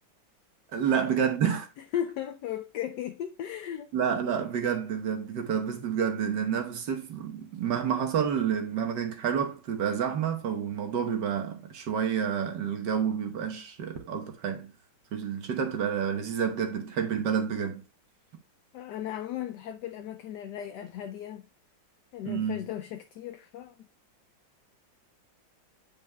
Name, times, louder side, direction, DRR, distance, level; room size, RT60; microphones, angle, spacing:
voice 1, 0.7-1.7 3.9-14.7 15.1-17.8 22.3-22.7, right 8 dB, 65° right, 1.7 m, -29 dB
voice 2, 1.9-3.9 18.7-21.5 22.1-23.7, left 10 dB, 70° left, 1.1 m, -36 dB
9.3 x 5.5 x 2.2 m
omnidirectional pair, 2.1 m